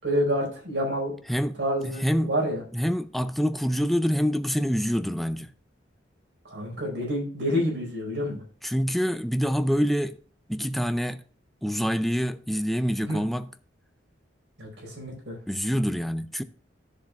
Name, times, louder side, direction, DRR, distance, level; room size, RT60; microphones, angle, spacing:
voice 1, 0.0-1.1 1.6-2.6 6.4-8.4 13.0-13.2 14.6-15.4, equal, 70° right, 4.8 m, -28 dB
voice 2, 1.3-2.3 2.7-5.5 8.6-10.2 10.5-11.2 11.6-13.5 15.5-16.4, equal, ahead, 0.4 m, -26 dB
13.0 x 7.4 x 2.4 m
head